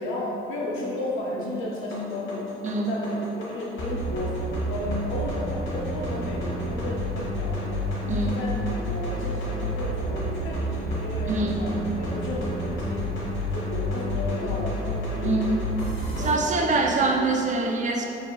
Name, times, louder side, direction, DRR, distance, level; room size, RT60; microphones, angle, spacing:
voice 1, 0.0-2.5 2.8-13.2 13.5-15.6 16.1-17.2, left 1 dB, 90° left, -2 dB, 0.7 m, -33 dB
sound 1, 1.6-16.3, equal, 70° left, 1.1 m, -30 dB
voice 2, 2.6-3.0 8.1-8.5 11.3-11.7 15.2-15.6 16.2-18.1, right 3 dB, 40° right, 1 dB, 0.6 m, -24 dB
6.2 x 2.9 x 2.3 m, 2.7 s
cardioid pair, 90°, 20 cm